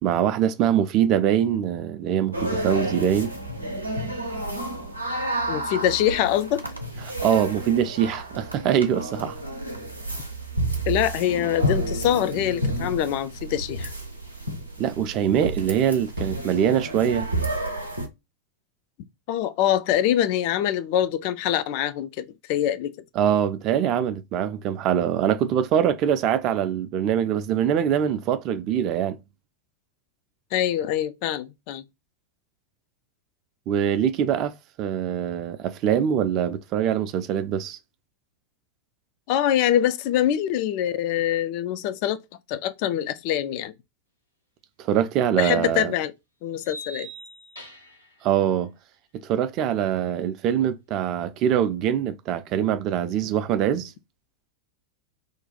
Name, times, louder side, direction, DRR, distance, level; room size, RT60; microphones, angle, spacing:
voice 1, 0.0-3.3 7.0-9.4 14.8-17.3 23.2-29.2 33.7-34.5 34.8-37.8 44.8-45.9 48.2-48.7 49.2-53.9, right 9 dB, 40° right, 0.4 m, -23 dB
sound 1, 2.3-18.1, right 1 dB, 85° right, 0.6 m, -30 dB
voice 2, 5.5-6.6 10.9-13.9 19.3-22.9 30.5-31.8 39.3-42.2 42.5-43.7 45.4-46.1 46.4-47.1, left 11 dB, 45° left, 0.3 m, -24 dB
sound 2, 45.0-45.1 46.6-48.1, right 1 dB, 85° left, 0.8 m, -41 dB
2.5 x 2.2 x 3.9 m
figure-of-eight pair, 90°, 0 cm